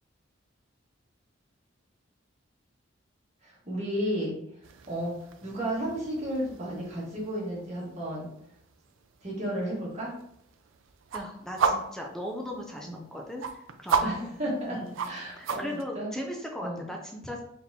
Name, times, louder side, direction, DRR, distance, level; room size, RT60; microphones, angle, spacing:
voice 1, 3.4-4.4 4.9-8.3 9.2-10.1 12.8-13.0 14.0-15.6 15.9-16.1 16.6-16.8, right 1 dB, 35° right, -5 dB, 1.5 m, -33 dB
sound 1, 4.6-15.9, right 5 dB, 85° right, 0.4 m, -35 dB
voice 2, 11.1-14.3 14.7-17.4, equal, 5° left, 0 dB, 0.4 m, -38 dB
4.1 x 3.5 x 2.8 m, 0.74 s
head